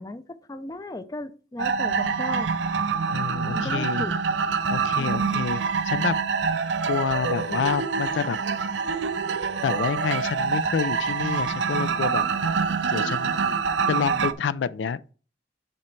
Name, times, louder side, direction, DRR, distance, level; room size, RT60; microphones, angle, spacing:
voice 1, 0.0-2.5 3.5-4.1 5.0-5.5, left 1 dB, 20° left, 0.4 m, -36 dB
sound 1, 1.6-14.3, right 5 dB, 90° right, 0.6 m, -26 dB
voice 2, 3.1-4.0 4.7-6.2 6.9-8.4 9.6-12.2 12.8-13.4 13.9-15.1, left 6 dB, 90° left, 0.4 m, -28 dB
10.5 x 4.3 x 3.2 m
head